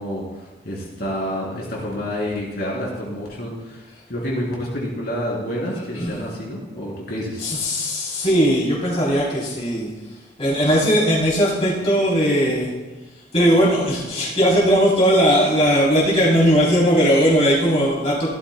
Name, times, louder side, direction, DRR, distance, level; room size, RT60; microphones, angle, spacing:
voice 1, 0.0-7.4, equal, 50° left, -4 dB, 3.5 m, -28 dB
voice 2, 7.4-9.9 10.4-12.7 13.3-18.3, equal, 30° left, -6 dB, 3.4 m, -18 dB
17.0 x 13.0 x 2.2 m, 1.1 s
head